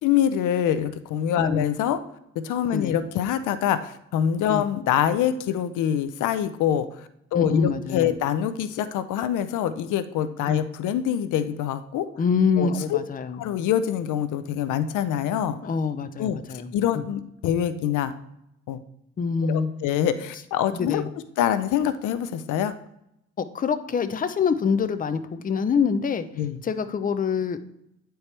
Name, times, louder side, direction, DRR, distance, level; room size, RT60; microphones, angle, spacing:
voice 1, 0.0-2.0 2.4-6.9 7.3-12.1 12.6-13.0 13.4-15.6 16.2-18.1 18.7-18.8 19.5-21.0 21.4-22.7 26.4-26.6, left 10 dB, 85° left, 12 dB, 0.6 m, -25 dB
voice 2, 7.3-8.1 10.5-10.6 12.2-13.4 15.6-17.0 19.2-19.7 20.7-21.1 23.4-26.2 26.6-27.6, left 6 dB, 30° left, 11 dB, 0.5 m, -25 dB
9.5 x 4.5 x 3.3 m, 0.79 s
cardioid pair, 90°, 30 cm